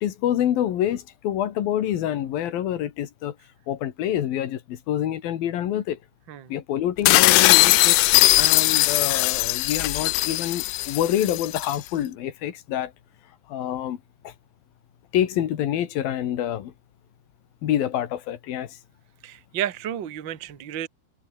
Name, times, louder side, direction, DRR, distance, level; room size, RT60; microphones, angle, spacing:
voice 1, 0.0-3.3 3.7-6.0 6.5-8.0 8.4-12.9 13.5-14.0 14.2-14.3 15.1-16.7 17.6-18.8, left 11 dB, 65° left, 3.3 m, -26 dB
sound 1, 7.1-11.8, left 19 dB, 85° left, 2.7 m, -19 dB
voice 2, 19.2-20.9, right 11 dB, 70° right, 1.1 m, -31 dB
omnidirectional pair, 4.9 m